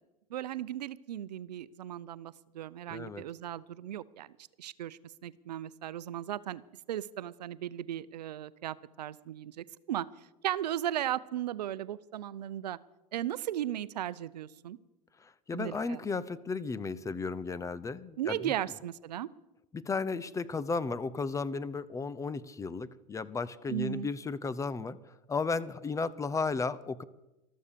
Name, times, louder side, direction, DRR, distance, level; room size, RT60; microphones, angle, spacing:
voice 1, 0.3-4.3 4.6-6.6 6.9-10.1 10.4-12.8 13.1-14.8 15.5-16.0 18.2-19.3 23.7-24.1, right 12 dB, 90° right, 18 dB, 0.6 m, -36 dB
voice 2, 2.9-3.3 15.2-18.5 19.7-27.0, left 4 dB, 15° left, 17 dB, 0.7 m, -34 dB
13.5 x 13.5 x 6.8 m, 0.97 s
hypercardioid pair, 110°, 20 cm